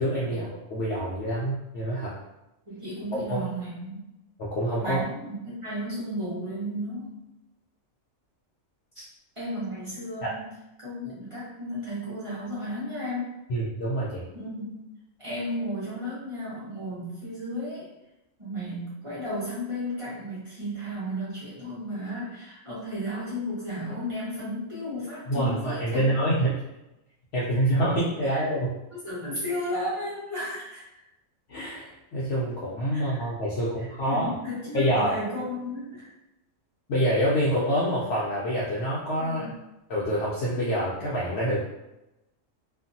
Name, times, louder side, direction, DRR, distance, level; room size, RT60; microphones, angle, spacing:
voice 1, 0.0-2.1 3.3-3.4 4.4-5.0 10.2-10.3 13.5-14.2 25.3-26.5 27.3-28.7 31.5-34.3 34.7-35.2 36.9-39.4 39.9-41.6, right 1 dB, 65° left, -6 dB, 0.8 m, -26 dB
voice 2, 2.6-4.0 4.8-7.1 9.4-10.5 10.8-13.3 14.3-14.8 15.2-17.9 18.4-26.1 28.2-28.4 28.9-30.8 32.9-33.3 33.8-36.1 39.2-39.4, equal, 25° right, -10 dB, 1.0 m, -34 dB
2.7 x 2.5 x 2.6 m, 0.93 s
omnidirectional pair, 1.4 m